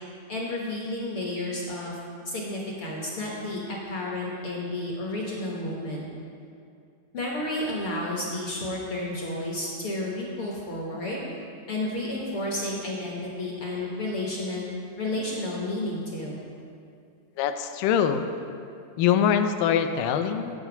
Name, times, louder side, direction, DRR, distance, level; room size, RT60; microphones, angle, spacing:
voice 1, 0.3-1.9 2.2-6.0 7.1-11.2 11.7-14.7 15.0-16.4, left 1 dB, 65° left, -3 dB, 1.4 m, -31 dB
voice 2, 17.4-18.2 19.0-20.5, left 8 dB, 85° left, 8 dB, 2.2 m, -23 dB
8.1 x 7.8 x 5.8 m, 2.4 s
omnidirectional pair, 3.8 m